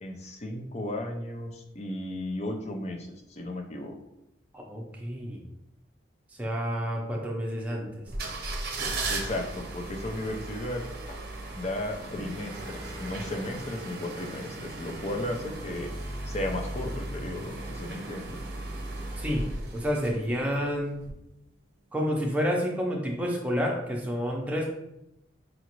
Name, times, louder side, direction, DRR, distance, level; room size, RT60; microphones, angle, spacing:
voice 1, 0.0-4.0 9.1-11.2 11.5-15.9 16.3-18.4, left 1 dB, 35° left, 3 dB, 0.5 m, -35 dB
voice 2, 4.5-5.4 6.4-8.0 19.2-19.4 19.7-21.0 21.9-24.6, equal, 10° right, -2 dB, 0.6 m, -29 dB
sound 1, 8.1-20.5 21.0-21.1, right 2 dB, 55° right, 0.6 m, -36 dB
4.9 x 2.5 x 3.0 m, 0.84 s
head